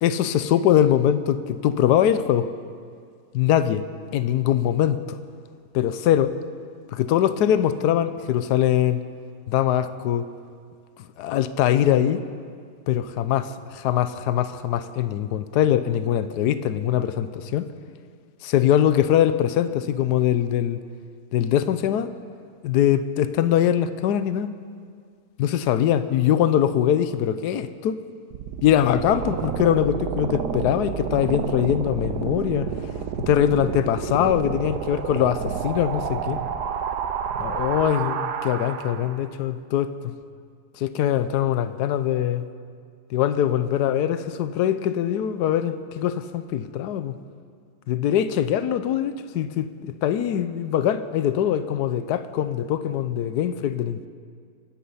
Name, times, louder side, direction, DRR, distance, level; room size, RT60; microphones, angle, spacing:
voice 1, 0.0-2.5 3.3-3.8 4.1-5.2 5.7-6.3 6.9-9.0 9.5-10.2 11.2-12.2 12.9-17.7 18.4-20.8 21.3-22.1 22.6-24.5 25.4-28.0 28.6-32.7 33.2-36.4 37.4-40.1 40.8-42.4 43.1-47.1 47.9-54.1, left 10 dB, 80° left, 12 dB, 1.2 m, -22 dB
sound 1, 28.3-39.3, right 7 dB, 85° right, 1.4 m, -30 dB
24.0 x 10.5 x 5.6 m, 2.1 s
omnidirectional pair, 1.7 m